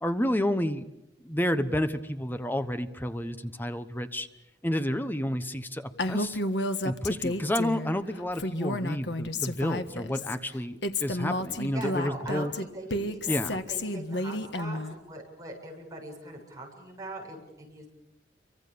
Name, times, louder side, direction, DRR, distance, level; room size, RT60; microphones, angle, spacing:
voice 1, 0.0-0.9 1.2-4.3 4.6-6.4 6.8-12.5 13.3-13.6, equal, 10° left, 10 dB, 1.0 m, -30 dB
Female speech woman speaking, 6.0-7.9 8.3-10.3 10.8-14.9, left 2 dB, 70° left, 1.5 m, -31 dB
voice 2, 11.7-17.9, right 1 dB, 20° right, 0 dB, 7.6 m, -42 dB
29.0 x 24.5 x 7.0 m, 0.90 s
head